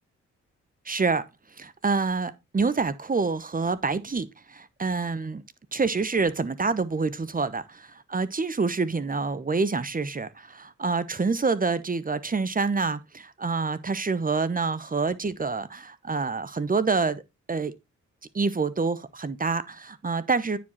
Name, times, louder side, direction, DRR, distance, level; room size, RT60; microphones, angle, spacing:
voice 1, 0.9-1.2 1.6-5.4 5.7-17.2 17.5-17.7 18.3-20.6, right 4 dB, 25° right, 0.9 m, -27 dB
9.3 x 5.0 x 4.1 m
supercardioid pair, 50°, 31 cm